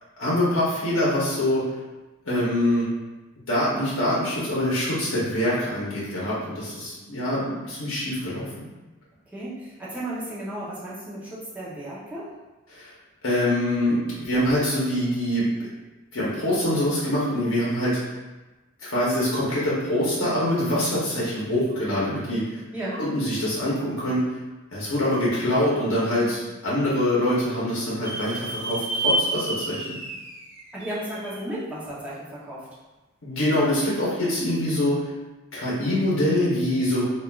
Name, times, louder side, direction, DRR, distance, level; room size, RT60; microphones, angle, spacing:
voice 1, 0.2-1.6 2.2-2.9 3.5-8.5 12.7-12.9 13.2-15.7 16.1-18.2 18.8-22.6 23.0-24.4 24.7-30.0 33.2-35.0 35.5-37.0, left 1 dB, 65° left, -8 dB, 0.8 m, -24 dB
voice 2, 9.3-12.3 22.7-23.0 30.7-32.7, right 1 dB, 5° right, -9 dB, 0.7 m, -34 dB
sound 1, 28.0-31.5, right 1 dB, 50° right, 0.5 m, -29 dB
3.4 x 2.4 x 2.3 m, 1.1 s
head